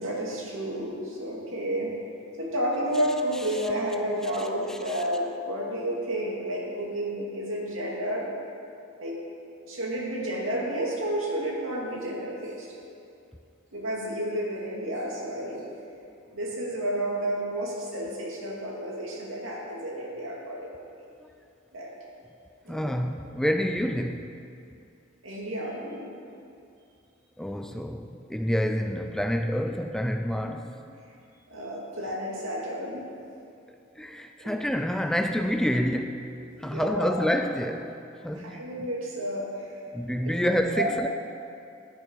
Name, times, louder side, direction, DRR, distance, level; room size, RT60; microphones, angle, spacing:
voice 1, 0.0-1.9 2.4-8.3 9.0-9.2 9.6-12.7 13.7-15.7 16.3-20.9 21.7-21.9 22.6-22.9 25.2-26.1 31.5-33.0 34.4-34.5 36.5-37.2 38.3-39.7 40.2-41.1, right 1 dB, 75° right, -3 dB, 2.5 m, -31 dB
voice 2, 22.7-24.4 27.4-30.7 34.0-38.6 39.9-41.1, equal, 5° left, 5 dB, 0.3 m, -28 dB
11.5 x 10.5 x 4.7 m, 2.5 s
head